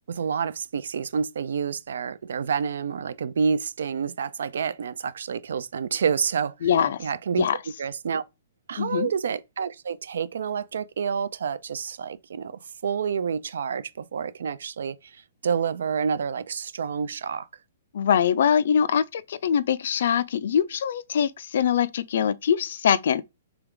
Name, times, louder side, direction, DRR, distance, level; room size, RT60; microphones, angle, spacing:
voice 1, 0.1-6.5 7.0-7.5 7.8-8.2 8.7-17.5, right 6 dB, 80° right, 0.4 m, -28 dB
voice 2, 6.6-7.1 7.3-7.6 8.8-9.1 17.9-23.2, left 8 dB, 60° left, 0.4 m, -23 dB
3.4 x 3.4 x 3.7 m
hypercardioid pair, 165°, 0 cm